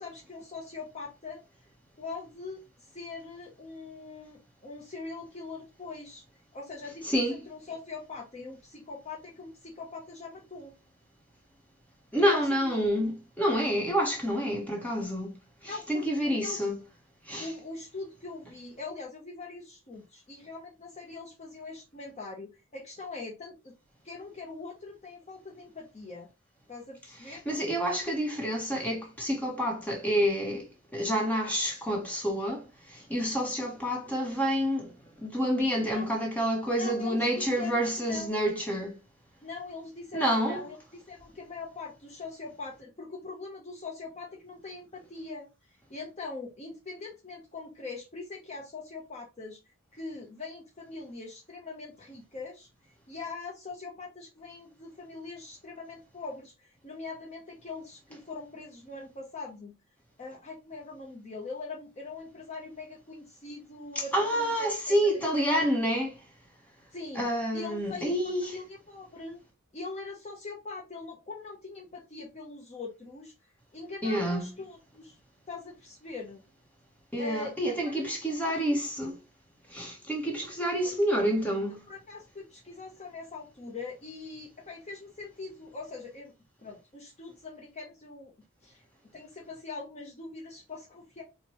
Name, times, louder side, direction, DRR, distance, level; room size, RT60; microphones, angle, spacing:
voice 1, 0.0-1.4 2.0-2.6 2.9-6.2 6.5-10.7 12.2-12.8 15.6-16.7 17.4-23.7 24.0-26.3 26.7-27.4 35.7-36.1 36.8-38.3 39.4-40.8 41.1-45.5 45.9-49.6 49.9-52.7 53.1-59.7 60.2-64.9 65.3-65.4 66.9-67.3 67.5-69.4 69.7-73.3 73.7-75.2 75.5-76.4 77.2-78.3 78.7-78.8 81.9-86.3 86.6-88.3 88.6-88.8 89.1-91.2, left 3 dB, 30° left, 0.7 m, -42 dB
voice 2, 7.0-7.4 12.1-15.4 15.6-16.8 17.3-17.5 27.3-39.0 40.1-40.6 63.9-66.1 67.1-68.5 74.0-74.5 77.1-79.1 79.7-81.8, equal, 5° left, 1.0 m, -28 dB
4.4 x 2.2 x 2.9 m
head